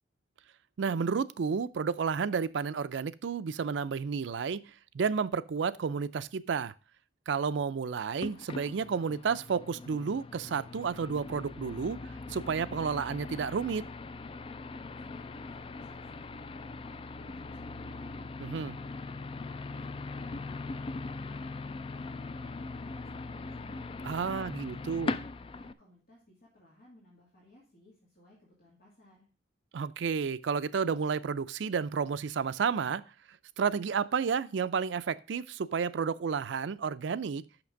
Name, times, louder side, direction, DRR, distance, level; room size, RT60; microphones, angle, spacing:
voice 1, 0.8-4.6 4.9-6.7 7.3-12.0 12.3-13.9 18.4-18.8 24.0-25.1 29.7-33.0 33.6-37.4, right 6 dB, 70° right, 0.4 m, -31 dB
sound 1, 8.2-25.7, left 3 dB, 30° left, 0.3 m, -40 dB
voice 2, 15.0-18.4 18.8-20.7 21.0-23.9 24.5-29.3, left 1 dB, 55° left, 2.4 m, -59 dB
5.9 x 5.8 x 6.3 m
head